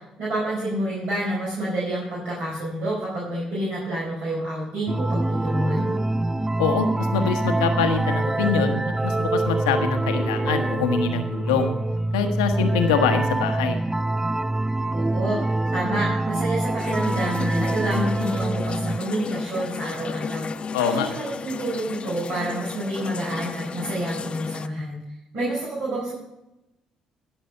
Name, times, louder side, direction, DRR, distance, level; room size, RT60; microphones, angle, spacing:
voice 1, 0.0-5.9 14.9-25.0 25.3-26.1, right 1 dB, 65° right, -7 dB, 4.5 m, -28 dB
sound 1, 4.9-19.0, right 2 dB, 15° right, 0.3 m, -25 dB
voice 2, 6.6-11.7 12.1-13.8 20.7-21.1, left 6 dB, 80° left, 6 dB, 1.1 m, -24 dB
sound 2, 16.8-24.7, left 5 dB, 40° left, 0.5 m, -33 dB
14.5 x 6.1 x 6.7 m, 0.93 s
hypercardioid pair, 45°, 3 cm